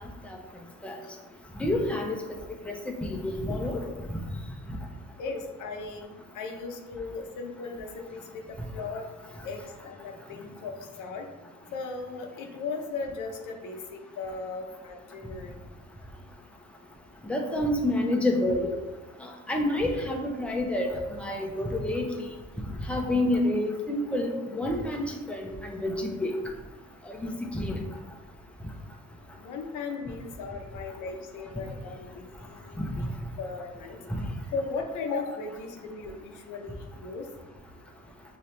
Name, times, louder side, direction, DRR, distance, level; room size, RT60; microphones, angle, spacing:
voice 1, 1.6-2.2 2.7-2.8 3.0-3.8 17.3-18.7 19.2-22.1 22.9-26.3 27.2-27.8 34.1-34.2, left 1 dB, 5° left, 1 dB, 0.7 m, -28 dB
voice 2, 5.2-9.1 9.4-11.3 11.7-15.6 29.4-33.1 33.4-34.0 34.5-37.3, left 4 dB, 90° left, 3 dB, 0.7 m, -37 dB
5.6 x 2.8 x 3.2 m, 1.1 s
cardioid pair, 90°, 30 cm